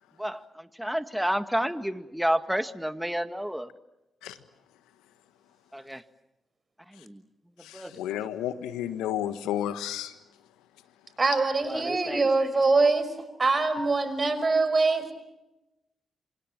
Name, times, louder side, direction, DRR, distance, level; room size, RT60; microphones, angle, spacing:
voice 1, 0.2-3.7 5.7-6.0 6.9-7.2 7.7-8.2 11.6-12.3, equal, 5° right, 10 dB, 2.0 m, -30 dB
voice 2, 7.6-10.1, left 11 dB, 85° left, 11 dB, 1.5 m, -32 dB
voice 3, 11.2-13.1 13.4-15.1, right 3 dB, 40° right, 11 dB, 5.6 m, -23 dB
27.5 x 26.0 x 7.6 m, 0.98 s
hypercardioid pair, 40°, 0 cm